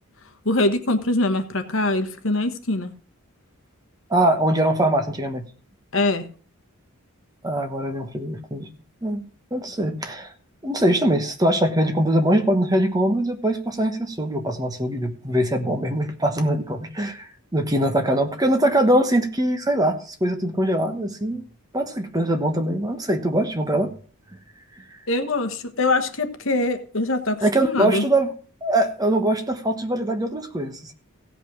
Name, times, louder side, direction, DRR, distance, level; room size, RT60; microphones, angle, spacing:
voice 1, 0.4-2.9 5.9-6.2 25.1-28.0, left 2 dB, 60° left, 8 dB, 1.2 m, -23 dB
voice 2, 4.1-5.5 7.4-8.7 9.0-9.2 9.5-10.3 10.6-21.4 21.7-23.9 27.4-28.3 28.6-30.9, right 1 dB, 15° right, 6 dB, 1.1 m, -22 dB
16.0 x 5.4 x 6.0 m, 0.40 s
head